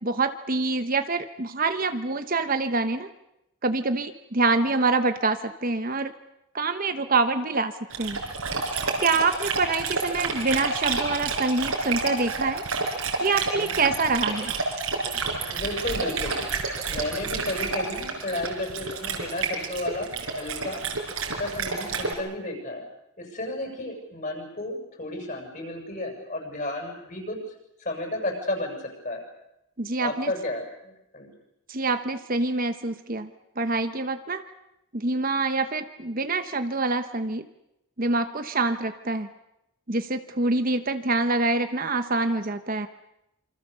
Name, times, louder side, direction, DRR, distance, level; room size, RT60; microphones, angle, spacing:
voice 1, 0.0-3.1 3.6-6.1 6.5-7.7 8.0-8.2 9.0-12.6 13.2-14.5 29.8-30.3 31.7-33.3 33.6-34.4 34.9-37.4 38.0-39.3 39.9-42.9, right 3 dB, 40° right, 9 dB, 1.1 m, -26 dB
Dog, 7.9-22.1, right 4 dB, 75° right, 5.0 m, -29 dB
voice 2, 15.5-16.4 16.9-20.8 21.4-22.9 23.2-27.4 27.8-29.2 30.0-31.3, left 1 dB, 35° left, 2 dB, 7.6 m, -32 dB
27.5 x 26.0 x 6.9 m, 0.84 s
head